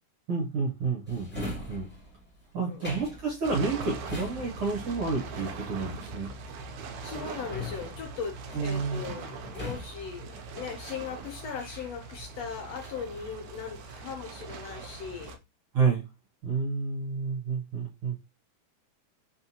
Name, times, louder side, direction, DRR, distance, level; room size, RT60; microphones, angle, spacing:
voice 1, 0.3-1.9 2.5-6.3 8.5-9.0 15.7-16.1 16.4-18.2, right 4 dB, 60° right, 1.6 m, -30 dB
Drawer open or close, 1.1-12.3 12.8-14.0 14.4-14.9, left 1 dB, 5° left, 1.1 m, -43 dB
sound 1, 3.4-15.4, right 4 dB, 90° right, 2.2 m, -41 dB
voice 2, 7.0-15.4, left 6 dB, 70° left, 1.7 m, -39 dB
4.4 x 3.7 x 2.8 m
omnidirectional pair, 3.4 m